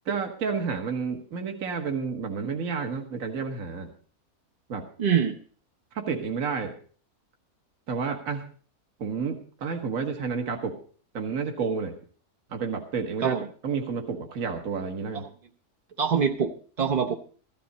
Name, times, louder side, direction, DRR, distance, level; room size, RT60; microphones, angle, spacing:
voice 1, 0.1-3.9 4.7-4.9 5.9-6.8 7.9-8.5 9.0-10.8 11.1-12.0 12.5-13.4 13.6-15.2, right 5 dB, 65° right, 3 dB, 1.8 m, -30 dB
voice 2, 5.0-5.4 13.2-13.5 16.0-17.1, right 7 dB, 40° right, 2 dB, 0.7 m, -24 dB
14.5 x 13.0 x 4.1 m, 0.43 s
omnidirectional pair, 1.6 m